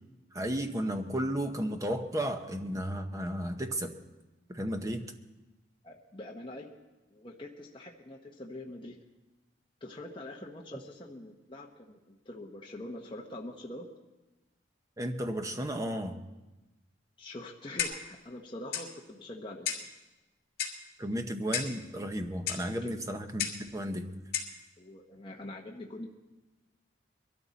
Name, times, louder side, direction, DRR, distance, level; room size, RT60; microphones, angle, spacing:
voice 1, 0.3-3.9 4.5-5.1 15.0-16.2 21.0-24.3, equal, 15° right, 6 dB, 0.8 m, -33 dB
voice 2, 5.8-6.7 7.1-9.0 9.8-13.9 17.2-19.9 22.8-23.0 24.8-26.1, left 1 dB, 25° left, -1 dB, 0.9 m, -44 dB
Clock, 17.8-18.1 18.7-18.9 19.6-19.9 20.6-20.9 21.5-21.8 22.5-22.7 23.4-23.7 24.3-24.6, left 8 dB, 50° left, 2.2 m, -33 dB
22.0 x 13.5 x 4.1 m, 1.1 s
head